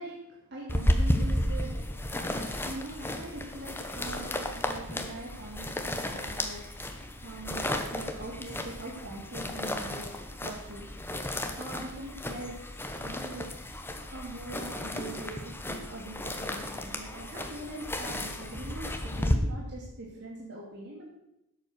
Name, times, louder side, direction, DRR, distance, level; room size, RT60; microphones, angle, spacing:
voice 1, 0.0-10.1 10.4-10.9 11.6-12.7 13.0-13.5 14.1-21.0, right 2 dB, 50° right, -4 dB, 2.5 m, -42 dB
sound 1, 0.7-19.4, left 1 dB, 10° left, 1.1 m, -33 dB
12.0 x 7.9 x 6.3 m, 0.86 s
head